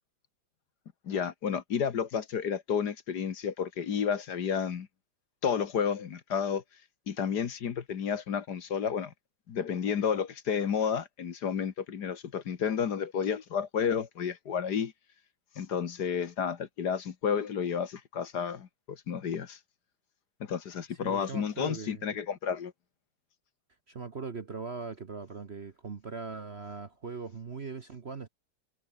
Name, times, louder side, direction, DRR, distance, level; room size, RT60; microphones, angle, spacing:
voice 1, 1.1-4.9 5.4-6.6 7.1-9.1 9.5-14.9 15.6-19.6 20.4-22.7, left 7 dB, 55° left, 1.9 m, -31 dB
voice 2, 21.0-22.1 23.9-28.3, right 5 dB, 40° right, 1.2 m, -40 dB
omnidirectional pair, 2.1 m